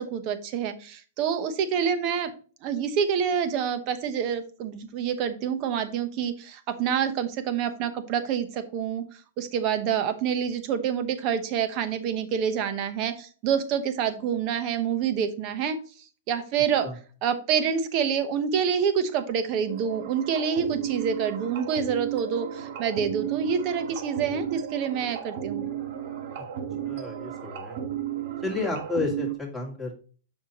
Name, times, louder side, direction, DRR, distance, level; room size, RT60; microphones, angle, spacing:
voice 1, 0.0-2.3 2.6-9.0 9.4-15.8 16.3-16.9 17.2-25.6, right 7 dB, 40° right, 10 dB, 0.9 m, -27 dB
sound 1, 19.6-29.4, right 10 dB, 60° right, 1.3 m, -34 dB
voice 2, 26.8-27.8 28.4-29.9, left 3 dB, 5° right, -1 dB, 2.3 m, -31 dB
7.3 x 5.7 x 3.0 m, 0.41 s
hypercardioid pair, 145°, 0 cm